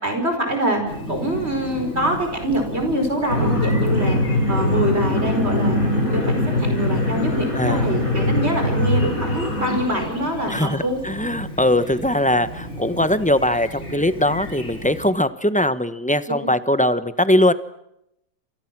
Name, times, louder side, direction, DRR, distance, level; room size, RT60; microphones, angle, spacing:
voice 1, 0.0-4.2 4.5-5.8 6.1-11.0, right 1 dB, 50° right, 4 dB, 5.4 m, -24 dB
Chirp tweet, 0.9-15.1, left 1 dB, 55° left, 5.0 m, -34 dB
sound 1, 3.3-9.8, left 1 dB, 75° left, 6.4 m, -21 dB
voice 2, 10.5-17.5, left 1 dB, 5° left, 12 dB, 1.0 m, -20 dB
29.0 x 28.0 x 6.1 m, 0.81 s
omnidirectional pair, 1.5 m